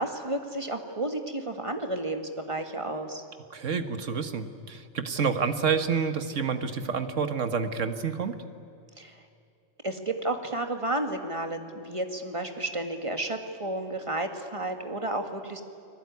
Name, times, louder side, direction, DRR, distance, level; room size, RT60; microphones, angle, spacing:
voice 1, 0.0-3.2 9.0-9.2 9.8-15.6, right 2 dB, 25° right, 6 dB, 2.0 m, -32 dB
voice 2, 3.5-8.4, right 6 dB, 80° right, 9 dB, 1.8 m, -28 dB
29.5 x 20.0 x 9.6 m, 2.6 s
omnidirectional pair, 1.3 m